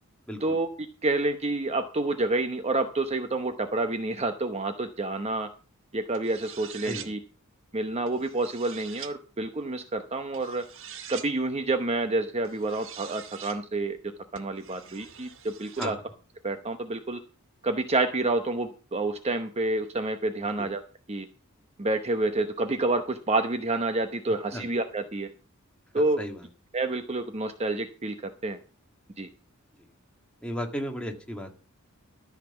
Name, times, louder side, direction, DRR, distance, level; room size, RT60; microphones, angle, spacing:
voice 1, 1.0-5.5 5.9-7.2 7.7-10.6 11.1-14.0 14.3-16.0 16.4-17.2 17.6-20.8 21.1-21.3 21.8-25.3 25.9-26.2 26.7-28.1 28.4-28.6 29.2-29.3, right 2 dB, 30° right, 8 dB, 0.9 m, -28 dB
sound 1, 6.1-7.1 8.1-9.1 10.3-11.3 12.4-13.6 14.3-15.9, right 9 dB, 65° right, 1.4 m, -44 dB
voice 2, 26.0-26.4 30.4-31.5, equal, 5° left, 2 dB, 2.1 m, -35 dB
13.5 x 5.9 x 7.1 m, 0.34 s
head